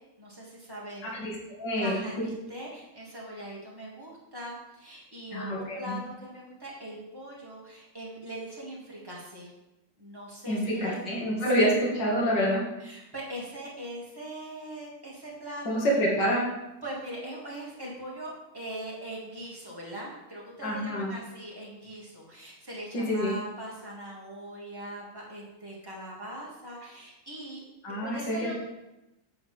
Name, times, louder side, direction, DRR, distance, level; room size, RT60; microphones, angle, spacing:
voice 1, 0.2-1.1 1.8-9.5 10.0-11.0 11.4-11.5 12.8-15.9 16.8-27.6 28.0-28.5, right 1 dB, 10° right, -5 dB, 2.2 m, -41 dB
voice 2, 1.0-2.0 5.3-5.9 10.5-12.7 15.6-16.5 20.6-21.1 22.9-23.3 27.8-28.5, equal, 75° left, -3 dB, 2.5 m, -27 dB
8.3 x 7.8 x 3.5 m, 0.95 s
omnidirectional pair, 1.9 m